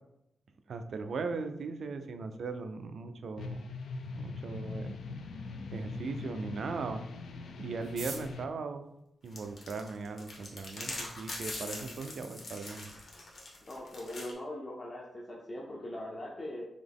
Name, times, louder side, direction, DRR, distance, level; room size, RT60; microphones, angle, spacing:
voice 1, 0.7-3.7 4.1-5.1 5.7-7.0 7.6-8.9 9.2-12.9, right 4 dB, 60° right, 8 dB, 0.4 m, -38 dB
sound 1, 3.4-8.4, left 3 dB, 75° left, 0.4 m, -42 dB
sound 2, 7.8-10.0 10.8-10.9 11.2-11.3 11.5-12.0 12.3-12.4 12.6-13.0 13.4-13.5 13.9-14.2, right 3 dB, 75° right, 0.8 m, -46 dB
sound 3, 9.3-14.3, left 2 dB, 45° left, 1.0 m, -42 dB
voice 2, 13.7-16.6, left 1 dB, 25° left, -4 dB, 0.6 m, -41 dB
3.9 x 3.0 x 3.5 m, 0.82 s
wide cardioid pair, 175°, 0 cm